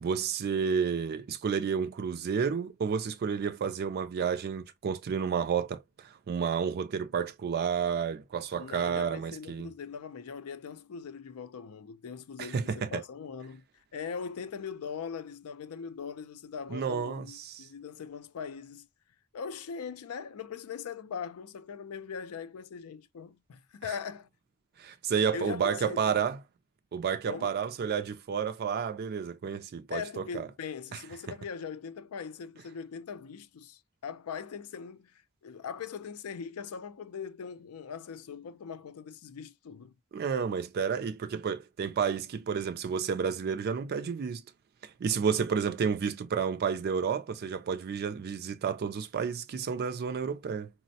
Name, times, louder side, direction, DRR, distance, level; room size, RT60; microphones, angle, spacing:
voice 1, 0.0-9.7 12.4-13.0 16.7-17.7 24.8-26.4 26.9-30.5 40.1-44.4 44.8-50.7, right 6 dB, 45° right, 0.4 m, -31 dB
voice 2, 8.5-13.6 13.9-18.9 19.3-24.3 25.3-26.2 27.3-27.6 29.9-39.9, left 6 dB, 75° left, 0.4 m, -41 dB
4.2 x 2.0 x 2.6 m
head